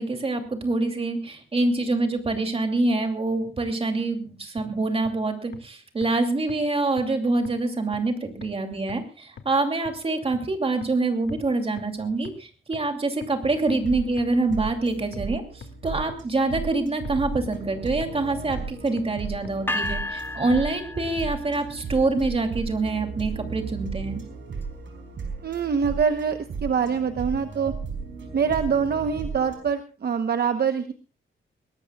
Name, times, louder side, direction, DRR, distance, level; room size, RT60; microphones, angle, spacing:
voice 1, 0.0-24.2, right 2 dB, 30° right, 4 dB, 2.7 m, -26 dB
sound 1, 4.6-4.7 5.0-5.1 5.5-5.6 6.0-6.1 6.5-6.6 7.0-7.1 7.4-7.5 7.9-8.0 8.4-8.5 8.9-9.0 9.4-9.5 9.8-9.9 10.3-10.4 10.8-10.9 11.3-11.4 11.8-11.9 12.2-12.3 12.7-12.8 13.2-13.3 13.7-13.8 14.2-14.3 14.6-14.7 15.1-15.2 15.6-15.7 16.1-16.2 16.6-16.7 17.0-17.1 17.5-17.6 18.0-18.1 18.5-18.6 19.0-19.1 19.4-19.5, left 7 dB, 65° left, 2.0 m, -41 dB
sound 2, 13.7-29.6, right 5 dB, 70° right, 4.6 m, -35 dB
sound 3, 19.7-21.8, left 2 dB, 10° left, 1.0 m, -32 dB
voice 2, 25.4-27.7 28.3-30.9, right 6 dB, 50° right, 8 dB, 0.9 m, -24 dB
22.5 x 18.5 x 2.3 m, 0.34 s
wide cardioid pair, 155°, 20 cm